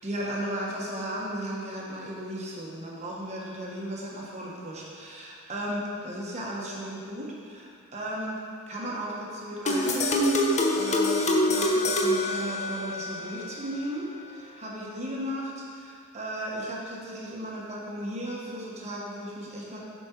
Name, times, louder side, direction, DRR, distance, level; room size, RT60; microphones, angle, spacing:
voice 1, 0.0-8.4 8.6-19.8, right 1 dB, 30° right, -4 dB, 1.3 m, -35 dB
sound 1, 9.7-13.1, left 1 dB, 30° left, 0.7 m, -25 dB
8.6 x 5.3 x 4.5 m, 2.3 s
head